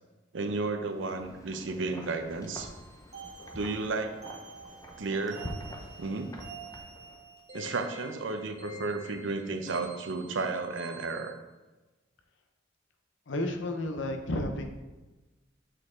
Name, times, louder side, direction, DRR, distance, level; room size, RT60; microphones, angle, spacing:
voice 1, 0.3-2.7 3.5-4.2 5.0-5.5 6.0-6.3 7.5-11.3, right 3 dB, 85° right, 6 dB, 0.7 m, -33 dB
Wind, 0.9-7.4, left 1 dB, 20° left, 0.7 m, -46 dB
sound 1, 2.6-11.3, right 2 dB, 35° right, 1.4 m, -48 dB
voice 2, 13.3-14.7, left 1 dB, 80° left, 5 dB, 0.7 m, -32 dB
6.5 x 4.6 x 3.7 m, 1.1 s
head